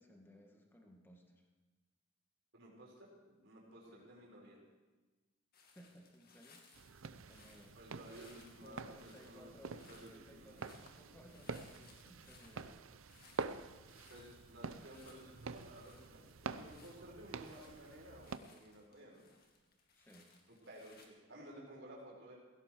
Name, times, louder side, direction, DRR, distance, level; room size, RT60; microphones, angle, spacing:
voice 1, 0.0-1.5 3.9-4.1 5.7-6.6 7.3-7.8 8.6-12.9 16.5-16.8 19.9-20.3, equal, 10° left, 1 dB, 1.8 m, -60 dB
voice 2, 2.5-4.6 7.7-9.6 9.9-10.8 14.1-19.2 20.5-22.3, right 1 dB, 60° right, -3 dB, 4.6 m, -55 dB
sound 1, 5.5-21.1, left 4 dB, 50° left, 2.1 m, -66 dB
sound 2, 6.7-18.4, right 4 dB, 85° right, 0.7 m, -48 dB
17.0 x 16.5 x 4.6 m, 1.2 s
head